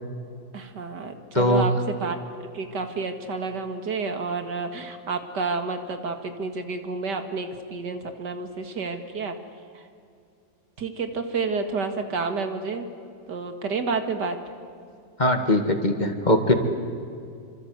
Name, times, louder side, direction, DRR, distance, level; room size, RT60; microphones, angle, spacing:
voice 1, 0.5-2.2 2.5-9.4 9.7-9.8 10.8-12.9 13.3-14.4, right 4 dB, 90° right, 7 dB, 2.5 m, -30 dB
voice 2, 1.3-1.7 15.2-16.5, left 1 dB, 25° left, 6 dB, 2.0 m, -20 dB
27.5 x 25.5 x 8.1 m, 2.4 s
omnidirectional pair, 1.8 m